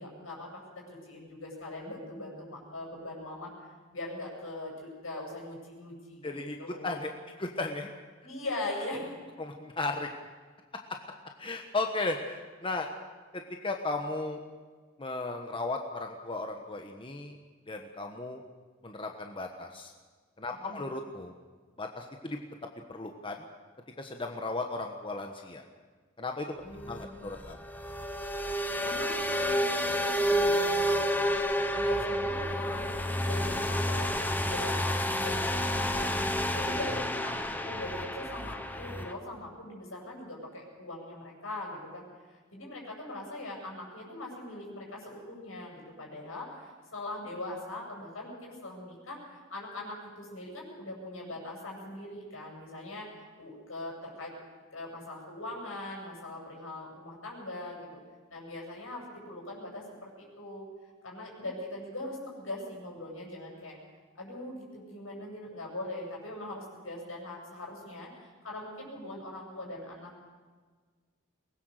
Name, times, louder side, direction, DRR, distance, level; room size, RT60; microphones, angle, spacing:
voice 1, 0.0-3.5 3.9-7.0 8.2-9.1 20.6-20.8 26.6-27.3 28.8-31.3 31.7-36.1 36.5-42.0 42.3-53.1 53.4-54.3 54.7-58.0 58.3-60.6 61.0-63.8 64.2-70.2, left 1 dB, 80° left, -1 dB, 7.5 m, -41 dB
voice 2, 6.2-6.6 6.8-7.1 7.4-7.9 9.4-10.1 11.4-12.9 13.3-14.4 15.0-17.3 17.7-18.4 18.8-19.9 20.4-21.3 21.8-22.4 22.9-23.4 24.0-25.6 26.2-26.5 26.9-27.6, left 2 dB, 25° left, 3 dB, 1.3 m, -35 dB
sound 1, 26.7-39.1, equal, 10° left, 1.1 m, -30 dB
23.0 x 20.0 x 6.6 m, 1.5 s
head